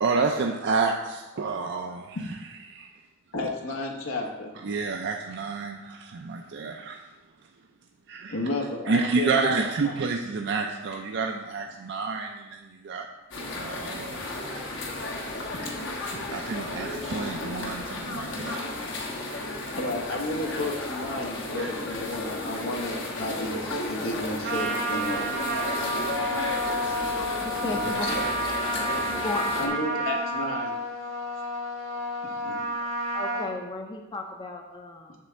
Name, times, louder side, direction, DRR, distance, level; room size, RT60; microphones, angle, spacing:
voice 1, 0.0-2.2 2.7-2.9 4.6-7.0 8.1-8.4 8.9-13.1 13.5-14.2 15.0-15.1 15.6-15.7 16.3-18.7 19.3-19.8 21.6-21.7 26.3-26.7, right 4 dB, 55° right, 3 dB, 0.4 m, -29 dB
voice 2, 3.3-4.5 8.3-9.9 19.8-23.5 23.9-25.3 25.9-26.0 27.7-28.2 29.0-29.2 29.6-30.8 32.2-32.6, left 2 dB, 85° left, 1 dB, 1.2 m, -32 dB
sound 1, 13.3-29.7, left 2 dB, 65° left, 1.2 m, -33 dB
Trumpet, 24.4-33.5, right 1 dB, 80° right, 1.5 m, -30 dB
voice 3, 27.4-28.5 29.0-29.8 32.7-35.1, left 2 dB, 20° left, 3 dB, 0.5 m, -35 dB
7.4 x 3.4 x 6.3 m, 1.1 s
head